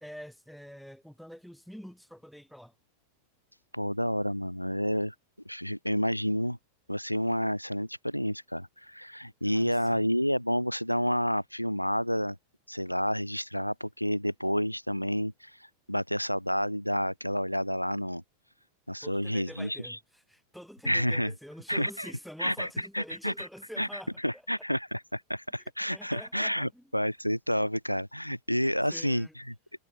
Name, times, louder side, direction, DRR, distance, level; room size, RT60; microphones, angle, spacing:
voice 1, 0.0-2.7 9.4-10.1 19.0-24.2 25.6-26.9 28.9-29.3, equal, ahead, 0.8 m, -46 dB
voice 2, 3.7-5.1 5.5-6.6 6.9-12.4 12.7-15.5 15.9-18.2 18.9-20.0 20.8-21.3 21.7-22.1 22.4-22.7 22.9-23.3 23.8-23.9 24.2-29.5, equal, 90° left, 0.7 m, -29 dB
figure-of-eight pair, 90°, 0 cm